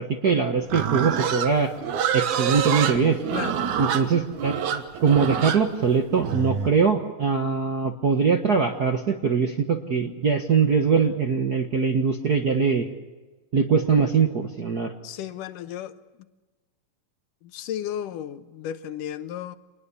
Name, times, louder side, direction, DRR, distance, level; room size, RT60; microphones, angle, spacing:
voice 1, 0.0-1.7 2.1-3.2 3.8-12.9 13.5-14.9, right 5 dB, 50° right, 1.1 m, -22 dB
Livestock farm animals working animals, 0.7-6.7, right 8 dB, 70° right, 2.7 m, -27 dB
voice 2, 3.3-3.7 15.0-16.0 17.4-19.6, left 10 dB, 85° left, 2.7 m, -34 dB
26.5 x 20.5 x 7.1 m
omnidirectional pair, 3.6 m